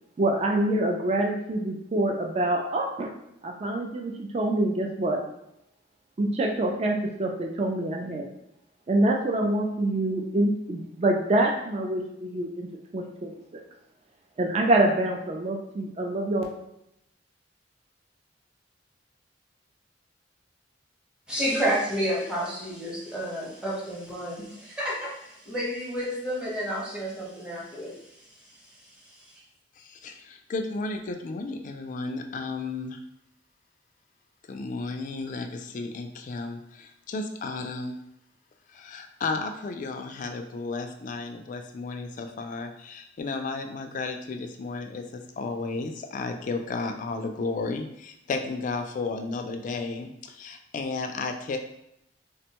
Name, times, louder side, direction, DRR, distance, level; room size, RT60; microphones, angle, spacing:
voice 1, 0.2-3.1 3.4-5.2 6.2-8.3 8.9-12.7 12.9-13.6 14.4-16.4, right 1 dB, 35° right, 1 dB, 0.4 m, -26 dB
voice 2, 21.3-27.9, equal, 5° right, -6 dB, 0.8 m, -30 dB
voice 3, 29.8-33.0 34.5-38.0 38.7-51.6, left 3 dB, 45° left, 5 dB, 0.3 m, -33 dB
3.4 x 2.1 x 2.9 m, 0.80 s
head